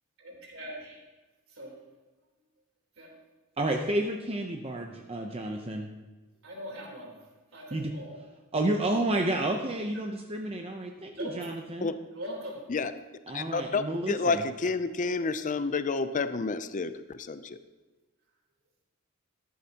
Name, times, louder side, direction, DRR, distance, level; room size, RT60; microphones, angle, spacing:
voice 1, 0.2-1.0 1.5-1.7 3.0-3.1 6.4-7.3 7.5-8.2 11.1-11.5 12.1-12.6, equal, 65° right, -1 dB, 3.7 m, -41 dB
voice 2, 3.6-5.9 7.7-7.9 8.5-11.9 13.3-14.4, right 1 dB, 25° right, 2 dB, 0.7 m, -30 dB
voice 3, 13.3-17.6, left 4 dB, 35° left, 11 dB, 0.5 m, -30 dB
13.5 x 11.5 x 2.9 m, 1.2 s
head